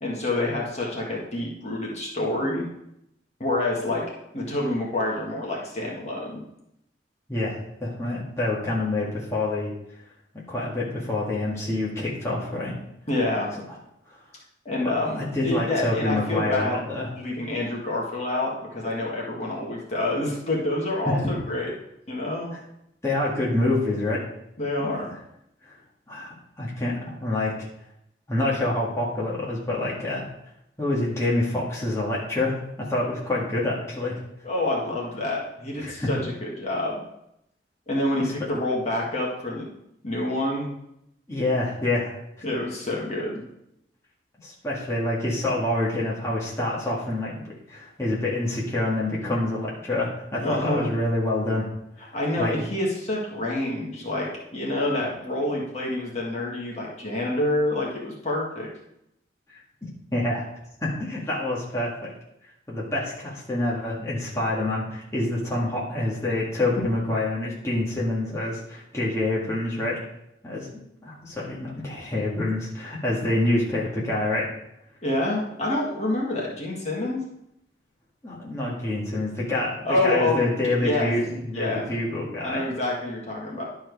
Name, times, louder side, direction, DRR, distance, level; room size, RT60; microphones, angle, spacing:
voice 1, 0.0-2.7 3.4-4.0 4.3-6.4 13.1-13.5 14.7-16.9 17.2-21.7 22.1-22.5 24.6-25.1 34.4-37.0 37.9-39.7 40.0-40.7 42.4-43.4 50.4-50.9 52.1-58.7 75.0-77.2 79.8-81.1 81.5-81.8 82.4-83.6, left 1 dB, 35° left, -3 dB, 1.8 m, -27 dB
voice 2, 7.3-9.7 10.5-12.7 15.2-17.1 21.0-21.2 23.0-24.2 24.8-25.1 25.7-25.8 26.1-27.5 28.3-30.3 30.8-34.2 35.8-36.1 38.2-38.3 41.3-42.2 44.4-47.4 47.7-51.7 52.4-52.5 60.1-60.5 60.8-62.1 62.7-70.0 70.4-70.7 71.0-74.5 78.2-82.7, left 2 dB, 15° left, -7 dB, 1.8 m, -27 dB
11.5 x 4.6 x 4.7 m, 0.80 s
head